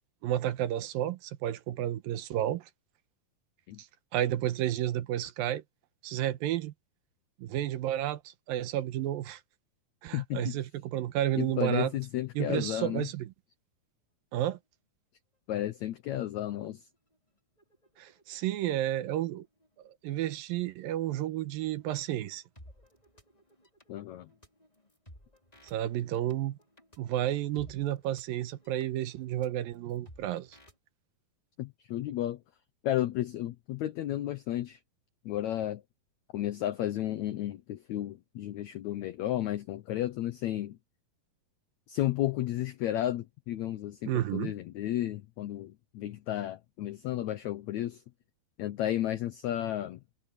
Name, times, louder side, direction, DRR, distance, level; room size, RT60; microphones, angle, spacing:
voice 1, 0.2-2.7 4.1-5.6 6.0-6.7 7.4-9.4 10.0-11.9 12.4-13.3 14.3-14.6 18.0-19.5 20.0-22.4 25.6-26.6 27.0-30.6 44.1-44.5, right 12 dB, 75° right, 2.6 m, -31 dB
voice 2, 10.1-10.6 11.4-13.1 15.5-16.9 23.9-24.3 31.6-32.4 32.8-34.8 35.2-35.8 36.3-40.8 41.9-48.0 48.6-50.0, left 13 dB, 90° left, 1.6 m, -33 dB
sound 1, 15.3-15.4 15.7-16.1 16.5-30.8, equal, 10° left, 5.2 m, -59 dB
omnidirectional pair, 4.3 m